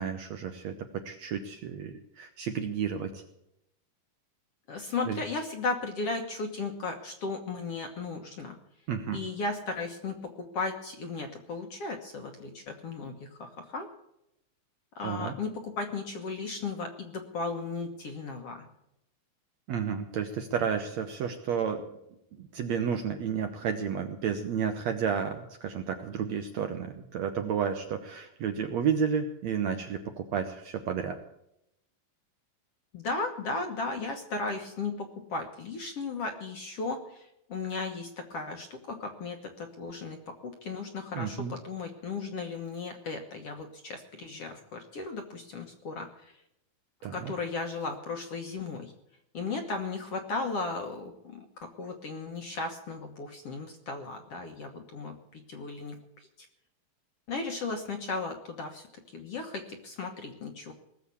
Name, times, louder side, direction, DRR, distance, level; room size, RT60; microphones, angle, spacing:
voice 1, 0.0-3.2 5.1-5.2 8.9-9.2 15.0-15.3 19.7-21.8 22.3-31.2 41.2-41.5 47.0-47.3, right 7 dB, 70° right, 6 dB, 1.8 m, -31 dB
voice 2, 4.7-8.6 9.1-13.9 15.0-18.7 32.9-46.4 47.1-48.9 49.3-56.0 56.4-56.5 57.3-58.9 59.1-60.7, left 3 dB, 55° left, 4 dB, 1.9 m, -36 dB
19.0 x 7.4 x 8.3 m, 0.80 s
omnidirectional pair, 4.1 m